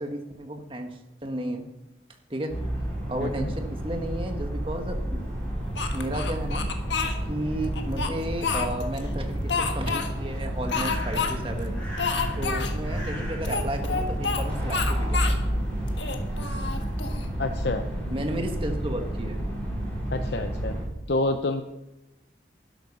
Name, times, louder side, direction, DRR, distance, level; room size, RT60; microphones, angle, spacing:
voice 1, 0.0-1.6 2.3-2.5 3.1-5.2 5.9-6.7 7.3-11.8 12.4-15.3 18.1-19.4, right 1 dB, 30° right, 4 dB, 1.7 m, -33 dB
sound 1, 2.5-20.8, right 1 dB, 10° left, 5.4 m, -30 dB
voice 2, 3.2-3.5 17.4-17.8 20.1-20.7 21.1-21.6, left 2 dB, 70° left, 6 dB, 0.7 m, -27 dB
Speech, 5.8-7.2 7.7-9.0 9.5-10.1 10.7-11.3 11.6-11.7 12.0-12.7 13.4-14.4 14.7-15.4 15.9-17.3, left 5 dB, 85° left, 1.6 m, -29 dB
12.0 x 12.0 x 5.5 m, 0.94 s
head